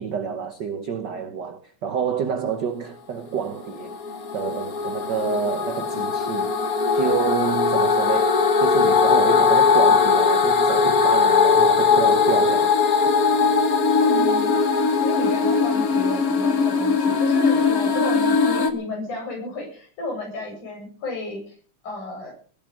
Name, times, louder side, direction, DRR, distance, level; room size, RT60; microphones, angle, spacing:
voice 1, 0.0-4.0 4.3-6.6 6.9-12.7, right 7 dB, 60° right, 1.1 m, -28 dB
sound 1, 3.6-18.7, left 5 dB, 40° left, 1.3 m, -19 dB
voice 2, 14.0-14.6 15.0-21.6 21.8-22.3, left 2 dB, 75° left, 9.4 m, -33 dB
19.5 x 11.0 x 5.4 m
omnidirectional pair, 3.6 m